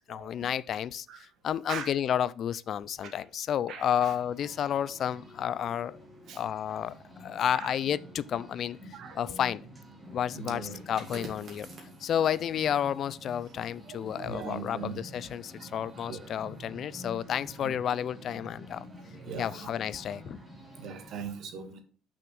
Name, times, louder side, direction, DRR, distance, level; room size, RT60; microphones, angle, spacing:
voice 1, 0.0-6.0 6.3-6.9 7.2-8.8 9.1-9.6 10.1-11.7 12.0-18.8 19.4-20.4, left 9 dB, 45° left, 0.4 m, -31 dB
voice 2, 3.7-4.1 6.3-6.4 7.5-7.7 9.0-9.4 10.3-10.7 13.9-15.0 16.1-16.2 17.6-17.7 19.2-19.5 20.8-21.8, right 6 dB, 55° right, 1.7 m, -39 dB
sound 1, 3.9-21.2, equal, 10° right, 2.3 m, -49 dB
sound 2, 10.6-16.0 16.4-16.6, right 3 dB, 30° right, 2.5 m, -51 dB
6.1 x 6.0 x 6.2 m
cardioid pair, 165°, 0 cm